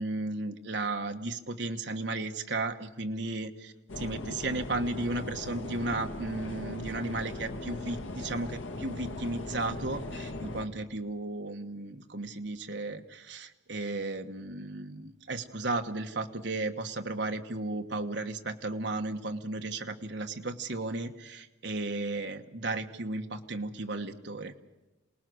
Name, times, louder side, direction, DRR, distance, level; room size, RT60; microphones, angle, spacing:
voice 1, 0.0-24.5, right 2 dB, 65° right, 5 dB, 1.4 m, -34 dB
sound 1, 3.9-10.7, left 2 dB, 85° left, 1.8 m, -39 dB
27.5 x 19.0 x 6.3 m, 1.1 s
head